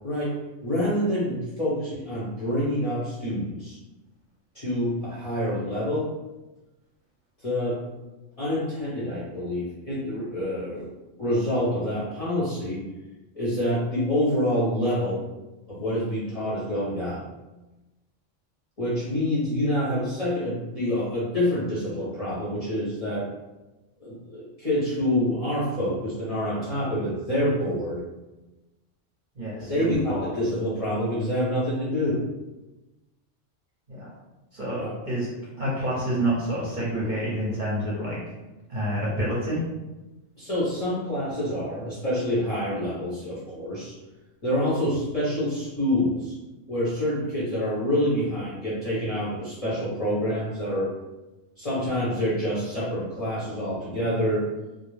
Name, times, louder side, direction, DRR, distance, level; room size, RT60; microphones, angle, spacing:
voice 1, 0.0-3.8 4.5-6.1 7.4-7.8 8.4-10.9 11.2-12.8 13.3-15.2 15.7-17.3 18.8-23.3 24.0-28.0 29.6-32.2 34.8-34.9 40.4-43.9 44.4-46.3 46.7-50.9 51.6-54.4, equal, 35° left, -9 dB, 0.6 m, -27 dB
voice 2, 29.4-30.3 33.9-34.1 34.5-35.3 35.6-38.2 38.7-39.6, right 1 dB, 45° right, -7 dB, 0.7 m, -28 dB
2.4 x 2.0 x 3.1 m, 1.1 s
omnidirectional pair, 1.3 m